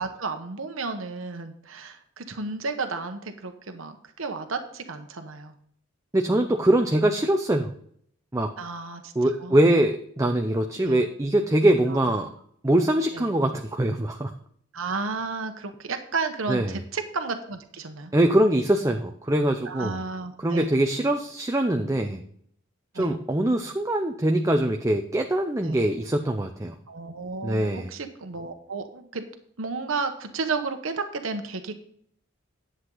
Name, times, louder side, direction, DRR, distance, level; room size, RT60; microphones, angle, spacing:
voice 1, 0.0-5.5 8.6-9.6 10.8-11.0 11.9-12.1 13.1-13.3 14.7-18.1 19.6-20.7 21.0-21.1 22.9-23.2 25.6-25.8 26.9-29.2 29.6-31.7, right 4 dB, 80° right, 7 dB, 1.0 m, -32 dB
voice 2, 6.1-7.7 8.3-8.5 9.2-12.3 12.6-14.3 16.5-16.8 18.1-20.0 20.4-22.2 22.9-26.7 27.4-27.9, right 1 dB, 15° right, 4 dB, 0.5 m, -23 dB
11.0 x 8.0 x 3.9 m, 0.65 s
head